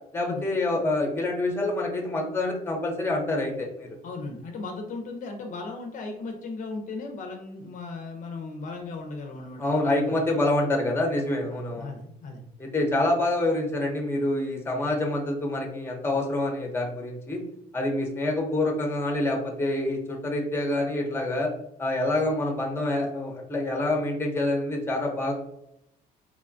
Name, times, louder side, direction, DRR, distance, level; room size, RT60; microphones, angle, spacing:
voice 1, 0.1-3.9 9.6-11.9 12.6-17.4 17.7-21.5 21.8-25.3, left 2 dB, 15° left, 1 dB, 0.7 m, -26 dB
voice 2, 4.0-10.2 11.5-12.4, left 3 dB, 50° left, 3 dB, 0.5 m, -37 dB
3.1 x 2.2 x 2.5 m, 0.79 s
cardioid pair, 110°, 17 cm